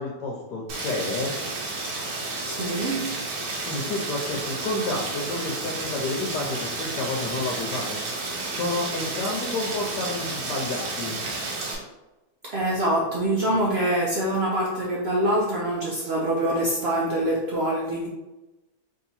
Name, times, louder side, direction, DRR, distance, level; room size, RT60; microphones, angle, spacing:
voice 1, 0.0-1.3 3.7-8.0 8.5-11.2, left 2 dB, 85° left, -1 dB, 1.3 m, -30 dB
Rain, 0.7-11.8, right 3 dB, 90° right, 1.5 m, -31 dB
voice 2, 2.5-3.1 12.4-18.1, right 1 dB, 70° right, -3 dB, 0.5 m, -25 dB
3.3 x 2.8 x 4.1 m, 1.0 s
omnidirectional pair, 1.8 m